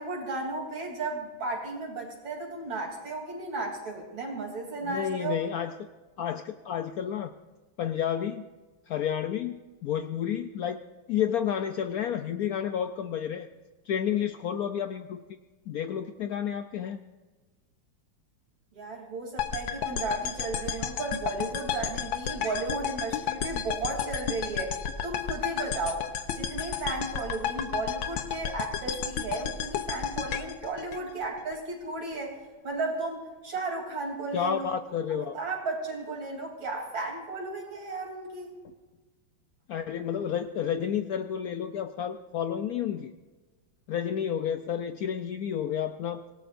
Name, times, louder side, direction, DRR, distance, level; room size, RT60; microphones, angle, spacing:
voice 1, 0.0-5.4 18.7-24.8 25.0-26.1 26.3-32.4 32.6-34.7 35.1-38.5, right 3 dB, 65° right, -1 dB, 4.1 m, -34 dB
voice 2, 4.8-5.9 6.2-7.3 7.8-8.4 8.9-10.8 11.1-13.5 13.9-15.2 15.7-17.0 34.3-35.4 39.7-43.1 43.9-46.2, left 9 dB, 90° left, 8 dB, 0.8 m, -30 dB
sound 1, 19.4-31.6, left 8 dB, 70° left, 1.6 m, -32 dB
26.5 x 18.0 x 2.6 m, 1.3 s
omnidirectional pair, 2.2 m